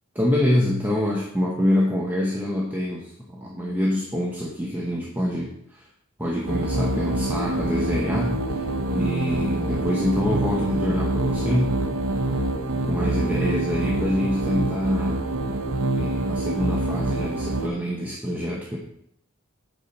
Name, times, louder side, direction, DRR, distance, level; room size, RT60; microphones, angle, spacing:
voice 1, 0.2-5.8 6.2-8.6 8.9-11.8 12.9-15.2 15.9-18.8, left 1 dB, 10° right, -3 dB, 0.8 m, -25 dB
sound 1, 6.5-17.7, right 1 dB, 90° right, 0.8 m, -26 dB
8.2 x 4.3 x 5.3 m, 0.74 s
head